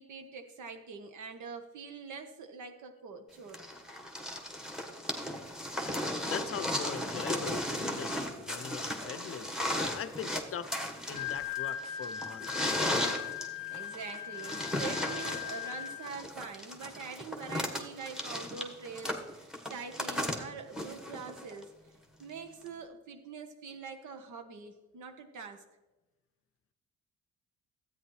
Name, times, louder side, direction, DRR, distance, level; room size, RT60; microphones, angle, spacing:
voice 1, 0.0-3.7 13.7-21.7 22.2-25.6, right 5 dB, 75° right, 6 dB, 1.3 m, -44 dB
sound 1, 3.5-21.6 22.7-22.8, left 1 dB, ahead, 1.3 m, -36 dB
voice 2, 6.3-12.9, left 8 dB, 50° left, 13 dB, 0.6 m, -41 dB
Wind instrument woodwind instrument, 10.9-16.3, left 11 dB, 15° left, 1.3 m, -39 dB
13.0 x 9.0 x 3.2 m, 1.1 s
cardioid pair, 90°, 30 cm